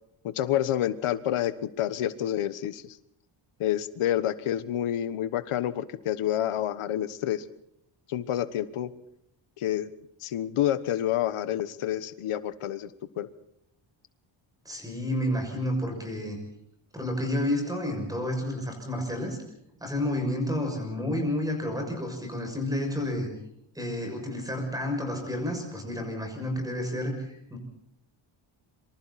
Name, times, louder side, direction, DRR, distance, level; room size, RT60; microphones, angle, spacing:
voice 1, 0.2-3.0 3.6-7.4 8.1-8.9 9.6-9.9 10.2-12.9 13.2-13.3, left 11 dB, 90° left, 13 dB, 1.3 m, -28 dB
voice 2, 14.6-16.4 16.9-19.4 19.8-23.3 23.7-27.6, left 1 dB, 5° right, 3 dB, 6.7 m, -30 dB
26.0 x 24.5 x 4.2 m, 0.75 s
wide cardioid pair, 180°, 49 cm